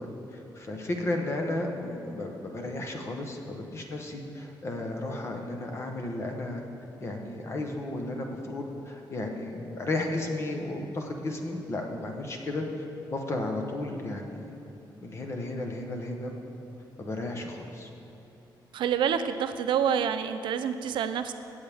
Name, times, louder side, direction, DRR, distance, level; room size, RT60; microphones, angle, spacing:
voice 1, 0.0-6.6 7.0-12.7 13.1-14.6 15.0-16.4 17.0-17.9, left 2 dB, 35° left, 3 dB, 1.0 m, -34 dB
voice 2, 18.7-21.3, right 8 dB, 85° right, 9 dB, 0.5 m, -27 dB
16.5 x 7.3 x 3.5 m, 3.0 s
wide cardioid pair, 165°, 8 cm